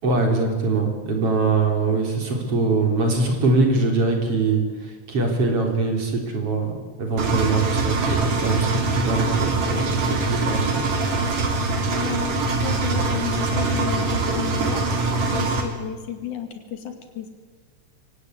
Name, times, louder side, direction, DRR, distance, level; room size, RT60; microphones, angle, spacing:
voice 1, 0.0-4.6 5.1-6.7 7.0-10.8, right 3 dB, 50° right, 2 dB, 4.7 m, -22 dB
Engine, 7.2-15.6, right 3 dB, 65° right, 4.2 m, -23 dB
voice 2, 11.9-14.9 15.3-17.3, left 9 dB, 80° left, 6 dB, 3.9 m, -32 dB
23.5 x 18.0 x 8.2 m, 1.4 s
omnidirectional pair, 3.4 m